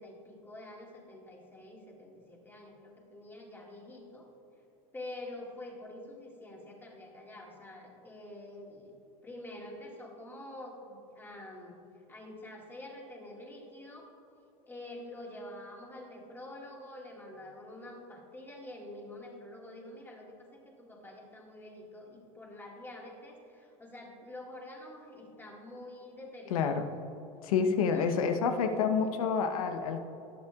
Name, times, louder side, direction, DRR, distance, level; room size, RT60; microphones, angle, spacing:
voice 1, 0.0-4.3 4.9-8.9 9.2-11.8 12.1-14.1 14.7-26.8 27.9-29.1, left 1 dB, 10° left, -1 dB, 1.9 m, -47 dB
voice 2, 26.5-26.9 27.4-30.0, left 6 dB, 85° left, 7 dB, 0.9 m, -28 dB
18.5 x 6.9 x 2.4 m, 2.8 s
supercardioid pair, 115°, 18 cm